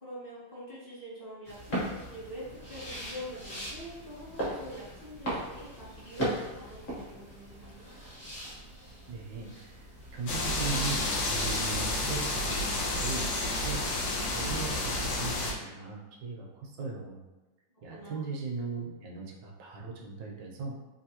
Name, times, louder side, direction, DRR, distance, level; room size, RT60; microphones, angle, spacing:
voice 1, 0.0-7.9 17.9-18.2, equal, 25° left, -9 dB, 0.4 m, -45 dB
sound 1, 1.5-10.9, right 1 dB, 45° left, 1.1 m, -38 dB
voice 2, 9.1-9.8 10.1-13.8 14.3-17.2 17.8-20.8, right 4 dB, 75° right, -1 dB, 1.3 m, -38 dB
sound 2, 10.3-15.5, left 2 dB, 80° left, 1.3 m, -30 dB
3.4 x 2.6 x 2.8 m, 1.1 s
omnidirectional pair, 2.0 m